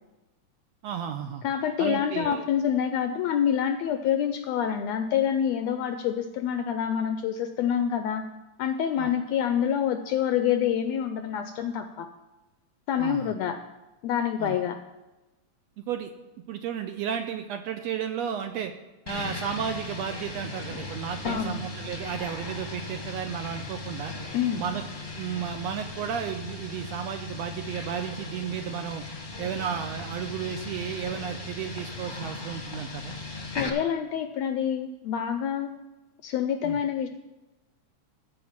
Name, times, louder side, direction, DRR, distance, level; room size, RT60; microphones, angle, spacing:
voice 1, 0.8-1.4 1.8-2.4 9.0-9.1 13.0-13.3 14.4-14.6 15.8-16.1 16.5-18.7 19.1-24.1 24.5-24.8 25.2-29.0 29.4-33.1 36.6-36.8, right 8 dB, 80° right, 6 dB, 1.6 m, -33 dB
voice 2, 1.4-8.2 8.6-12.1 12.9-13.6 14.0-14.8 21.2-21.6 24.3-24.6 33.5-35.7 36.2-37.1, left 9 dB, 80° left, 8 dB, 1.5 m, -27 dB
sound 1, 19.1-33.7, left 3 dB, 35° left, 0.7 m, -38 dB
14.0 x 5.0 x 7.3 m, 1.1 s
omnidirectional pair, 3.5 m